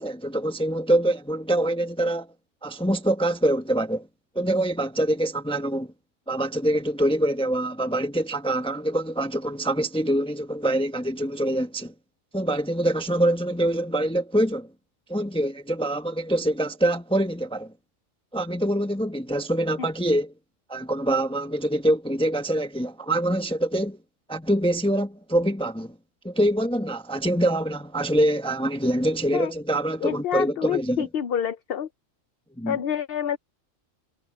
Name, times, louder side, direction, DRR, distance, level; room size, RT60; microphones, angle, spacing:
voice 1, 0.0-2.3 2.6-4.1 4.3-5.9 6.3-11.9 12.3-14.7 15.1-17.7 18.3-20.3 20.7-24.0 24.3-25.9 26.2-31.1 32.6-32.8, right 1 dB, 5° left, 1.0 m, -25 dB
voice 2, 30.0-31.9 32.7-33.4, left 9 dB, 55° left, 0.8 m, -27 dB
omnidirectional pair, 1.3 m